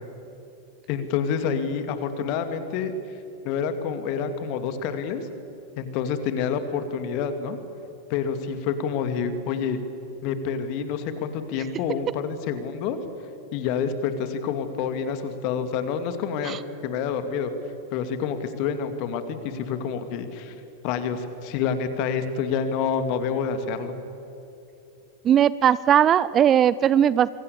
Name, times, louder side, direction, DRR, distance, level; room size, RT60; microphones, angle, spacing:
voice 1, 0.9-2.9 3.4-5.2 5.8-7.6 8.1-9.8 10.2-13.0 13.5-16.6 16.8-17.5 17.9-20.5 20.8-23.9, left 6 dB, 45° left, 9 dB, 2.6 m, -28 dB
voice 2, 25.2-27.3, right 9 dB, 30° right, 19 dB, 0.5 m, -18 dB
26.5 x 23.0 x 8.5 m, 2.8 s
figure-of-eight pair, 90°, 0 cm